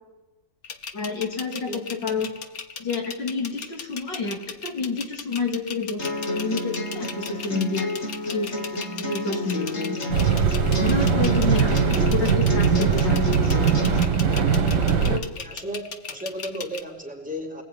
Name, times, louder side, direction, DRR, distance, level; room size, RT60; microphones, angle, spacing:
sound 1, 0.6-16.8, left 6 dB, 50° left, 1.6 m, -37 dB
voice 1, 0.9-2.3 2.8-6.1 6.3-7.9 8.3-10.0 10.8-13.3 15.0-15.2, left 4 dB, 70° left, 2 dB, 4.2 m, -29 dB
voice 2, 1.7-2.2 15.4-17.6, equal, 5° right, 0 dB, 4.4 m, -35 dB
sound 2, 6.0-14.0, equal, 35° left, 2.2 m, -29 dB
sound 3, 10.1-15.2, right 6 dB, 65° right, 2.3 m, -21 dB
29.0 x 20.0 x 9.7 m, 1.2 s
omnidirectional pair, 2.0 m